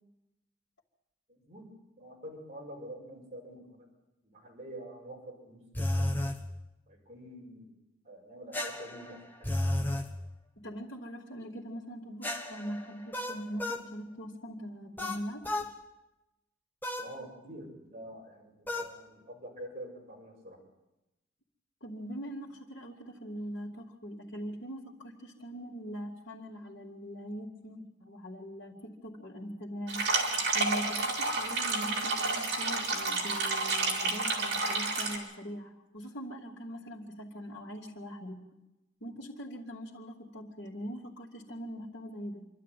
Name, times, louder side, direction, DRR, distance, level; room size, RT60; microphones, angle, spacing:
voice 1, 1.3-1.7 2.0-3.9 4.2-6.1 6.9-7.7 8.0-9.6 17.0-20.6, right 1 dB, 35° right, -2 dB, 5.4 m, -46 dB
sound 1, 5.7-6.4 8.5-10.1 12.2-13.9 15.0-15.7 16.8-17.1 18.7-18.9, left 1 dB, 10° left, 1.3 m, -33 dB
voice 2, 10.6-15.5 21.8-30.1 30.5-38.4 39.0-42.5, equal, 65° left, -6 dB, 2.7 m, -42 dB
sound 2, 29.9-35.2, right 3 dB, 55° right, 3.9 m, -30 dB
26.5 x 12.5 x 9.2 m, 0.97 s
head